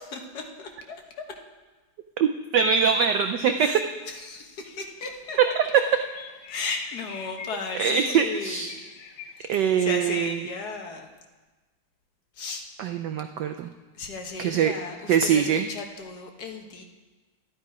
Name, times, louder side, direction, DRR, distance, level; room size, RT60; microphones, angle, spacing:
voice 1, 0.1-1.4 3.5-3.8 4.1-5.4 6.5-8.7 9.4-11.1 12.3-12.6 13.9-16.8, left 4 dB, 55° left, 3 dB, 1.5 m, -35 dB
voice 2, 2.2-3.7 5.6-5.7 7.8-8.7 9.5-10.4 12.8-13.7 14.4-14.7 15.1-15.7, right 7 dB, 80° right, 7 dB, 0.9 m, -23 dB
sound 1, 4.6-9.7, left 6 dB, 70° left, 1.6 m, -45 dB
12.0 x 10.5 x 4.8 m, 1.3 s
omnidirectional pair, 2.4 m